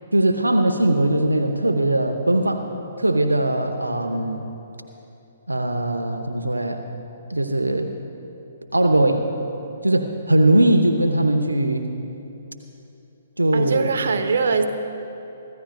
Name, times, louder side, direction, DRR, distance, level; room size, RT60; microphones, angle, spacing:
voice 1, 0.1-2.7 3.0-4.5 5.5-6.8 7.3-7.9 8.7-9.3 9.8-11.9 13.4-13.9, right 1 dB, 80° right, 6 dB, 0.8 m, -20 dB
voice 2, 13.5-14.7, right 5 dB, 60° right, 6 dB, 1.0 m, -22 dB
25.0 x 15.0 x 2.3 m, 2.9 s
figure-of-eight pair, 125°, 0 cm